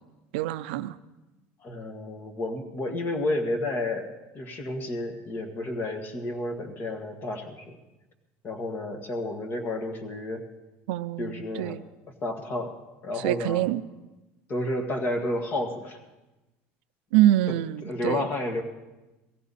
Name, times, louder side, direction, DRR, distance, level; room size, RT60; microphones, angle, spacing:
voice 1, 0.3-1.0 10.9-11.8 13.2-13.8 17.1-18.3, right 14 dB, 90° right, 12 dB, 0.5 m, -25 dB
voice 2, 1.6-7.8 8.4-10.5 11.2-11.8 12.2-12.7 13.0-13.6 14.5-16.0 17.5-17.6 17.8-18.6, left 1 dB, 35° left, 5 dB, 1.8 m, -31 dB
17.0 x 15.0 x 4.2 m, 1.1 s
supercardioid pair, 120°, 5 cm